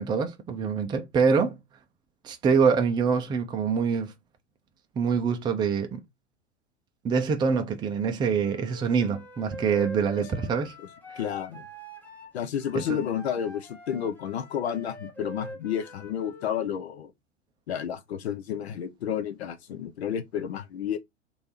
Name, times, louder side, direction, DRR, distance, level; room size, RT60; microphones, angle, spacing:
voice 1, 0.0-1.6 2.2-4.1 5.0-6.0 7.0-10.7 12.7-13.0, right 5 dB, 15° right, 0.5 m, -25 dB
Wind instrument woodwind instrument, 8.4-16.8, equal, 5° left, 0.9 m, -44 dB
voice 2, 11.2-11.6 12.3-17.1 17.7-21.0, left 9 dB, 65° left, 0.7 m, -31 dB
3.2 x 2.7 x 4.1 m
figure-of-eight pair, 90°, 35 cm